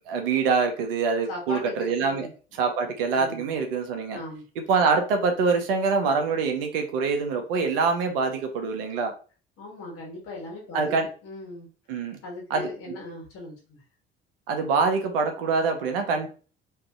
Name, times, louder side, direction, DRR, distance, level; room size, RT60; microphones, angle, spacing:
voice 1, 0.1-4.2 4.6-9.1 10.7-11.1 11.9-12.2 12.5-12.7 14.5-16.3, right 4 dB, 75° right, 0.6 m, -25 dB
voice 2, 1.3-2.3 3.2-3.5 4.1-4.4 9.6-10.9 11.2-11.7 12.2-13.8, left 2 dB, 50° left, 1.2 m, -38 dB
2.6 x 2.4 x 2.3 m
figure-of-eight pair, 55°, 29 cm